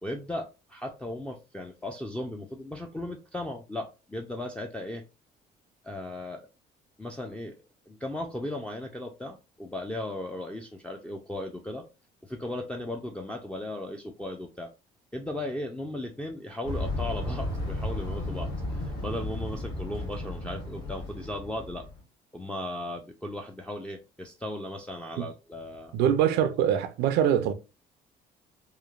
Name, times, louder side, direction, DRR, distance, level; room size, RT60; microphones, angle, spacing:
voice 1, 0.0-5.0 5.8-6.4 7.0-7.5 7.9-11.9 12.2-14.7 15.1-21.8 22.3-25.9, left 1 dB, 5° left, 0.3 m, -36 dB
sound 1, 16.6-22.0, left 1 dB, 85° left, 1.2 m, -34 dB
voice 2, 25.9-27.5, right 9 dB, 80° right, 0.4 m, -23 dB
3.0 x 2.1 x 2.3 m
cardioid pair, 110°, 17 cm